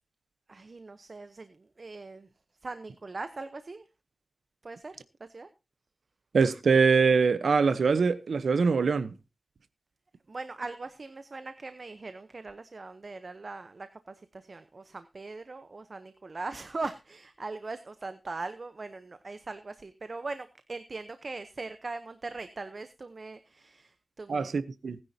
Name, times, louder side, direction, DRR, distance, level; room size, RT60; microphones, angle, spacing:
voice 1, 0.5-2.3 2.6-3.8 4.6-4.9 5.3-5.5 10.3-24.5, right 3 dB, 50° right, 0.8 m, -40 dB
voice 2, 6.3-9.1 24.3-25.0, right 5 dB, 85° right, 0.9 m, -23 dB
19.0 x 9.9 x 2.8 m
wide cardioid pair, 90°, 0 cm